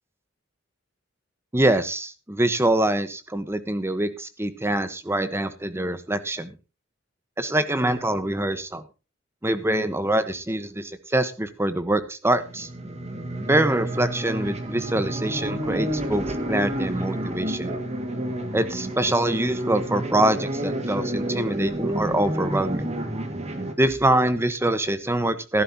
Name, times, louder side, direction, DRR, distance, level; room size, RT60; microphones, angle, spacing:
voice 1, 1.5-6.5 7.4-8.8 9.4-12.7 13.5-17.7 18.5-22.9 23.8-25.6, right 1 dB, 10° right, 11 dB, 1.2 m, -24 dB
sound 1, 12.4-23.7, right 1 dB, 35° right, 2.2 m, -30 dB
15.5 x 12.0 x 2.9 m, 0.30 s
head